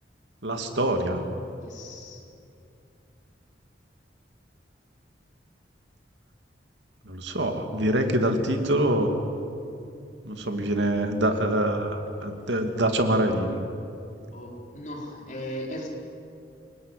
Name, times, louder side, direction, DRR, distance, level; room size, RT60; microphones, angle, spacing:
voice 1, 0.4-1.2 7.0-9.2 10.2-13.6, right 1 dB, 85° right, 5 dB, 2.7 m, -25 dB
voice 2, 1.6-2.2 14.3-15.9, left 1 dB, 40° left, -1 dB, 4.6 m, -37 dB
27.5 x 19.5 x 9.4 m, 2.6 s
head